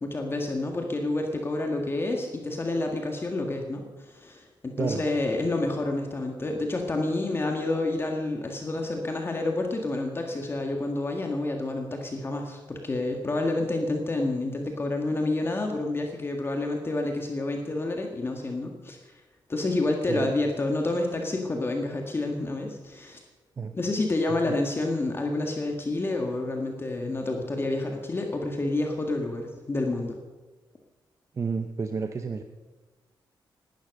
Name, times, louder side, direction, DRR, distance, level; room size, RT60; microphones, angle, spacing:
voice 1, 0.0-19.1 19.5-23.2 23.7-30.2, left 2 dB, 30° left, 2 dB, 1.8 m, -29 dB
voice 2, 20.0-20.3 23.6-23.7 24.5-24.6 31.3-32.4, right 5 dB, 40° right, 6 dB, 0.9 m, -30 dB
18.0 x 12.0 x 6.5 m, 1.3 s
wide cardioid pair, 135°, 8 cm